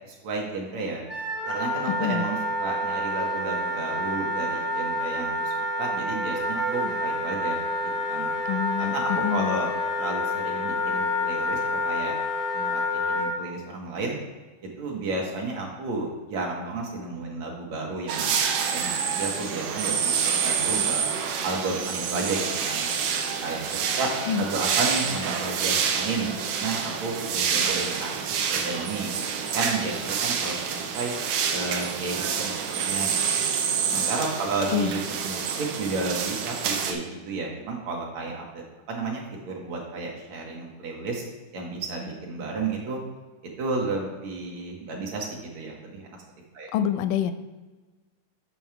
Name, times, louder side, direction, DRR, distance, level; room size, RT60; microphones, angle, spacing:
voice 1, 0.1-1.0 1.5-8.3 8.8-9.7 10.0-12.1 12.5-14.2 14.6-21.1 21.4-22.9 23.4-24.1 24.4-29.1 29.5-31.1 31.5-33.4 33.9-41.2 41.5-43.0 43.6-46.2 46.5-46.7, right 3 dB, 65° right, -1 dB, 2.2 m, -32 dB
Wind instrument woodwind instrument, 1.1-13.3, left 1 dB, ahead, 0.7 m, -28 dB
voice 2, 1.9-2.3 8.5-9.6 24.3-24.5 34.7-35.0 46.7-47.3, left 9 dB, 85° left, 11 dB, 2.1 m, -26 dB
sound 1, 18.1-36.9, right 6 dB, 85° right, 2.3 m, -27 dB
7.2 x 6.3 x 4.6 m, 1.3 s
omnidirectional pair, 3.7 m